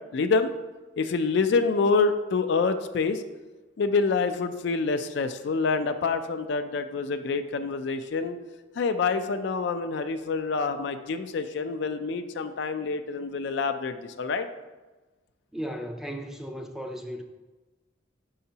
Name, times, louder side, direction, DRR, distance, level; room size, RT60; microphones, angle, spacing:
voice 1, 0.1-0.5 1.0-3.2 3.8-8.4 8.8-14.5, left 4 dB, 60° left, 8 dB, 0.4 m, -26 dB
voice 2, 15.5-17.2, equal, ahead, 3 dB, 0.4 m, -35 dB
6.7 x 5.6 x 2.8 m, 1.2 s
head